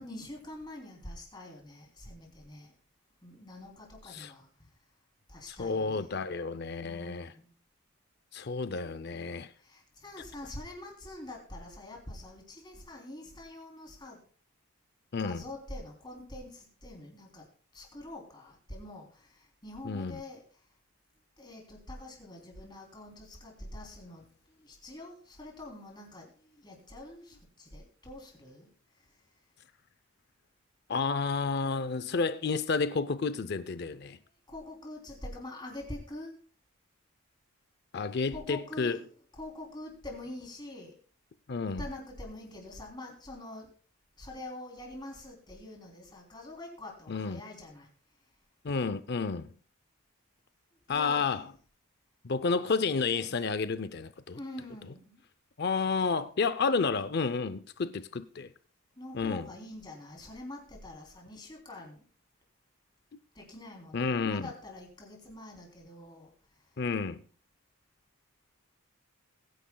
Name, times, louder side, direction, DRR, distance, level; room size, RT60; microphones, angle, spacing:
voice 1, 0.0-2.7 3.2-4.7 5.3-6.1 6.8-7.6 9.6-14.2 15.2-17.5 17.7-20.6 21.4-28.7 29.0-29.1 34.5-36.4 38.3-39.1 39.4-40.9 41.6-43.7 44.2-47.9 50.9-51.5 54.3-55.2 58.9-62.0 63.3-66.3 66.6-66.7, left 1 dB, 20° left, 3.2 m, -45 dB
voice 2, 5.6-7.3 8.3-9.5 15.1-15.4 19.8-20.2 30.9-34.2 37.9-39.0 41.5-41.8 47.1-47.4 48.6-49.5 50.9-51.5 52.2-54.4 55.6-58.5 59.1-59.5 63.9-64.5 66.8-67.2, left 4 dB, 50° left, 0.5 m, -31 dB
21.0 x 10.0 x 2.3 m
head